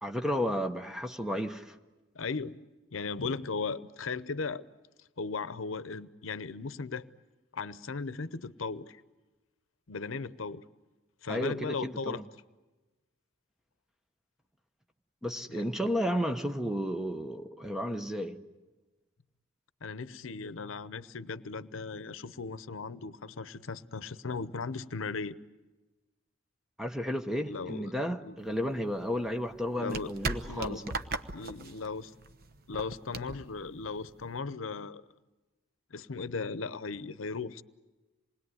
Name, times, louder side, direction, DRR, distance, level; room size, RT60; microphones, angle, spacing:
voice 1, 0.0-1.8 11.3-12.2 15.2-18.4 26.8-30.9, equal, ahead, 0.9 m, -33 dB
voice 2, 2.1-2.6 2.9-4.7 5.2-7.1 7.5-9.0 9.9-10.6 11.2-12.2 15.5-15.7 19.8-25.4 27.4-27.9 28.2-28.4 29.7-30.1 30.5-30.8 31.3-32.1 32.7-35.0 35.9-37.6, left 4 dB, 90° left, 0.8 m, -37 dB
sound 1, 28.4-34.4, right 3 dB, 50° right, 1.0 m, -39 dB
27.5 x 20.5 x 9.6 m
head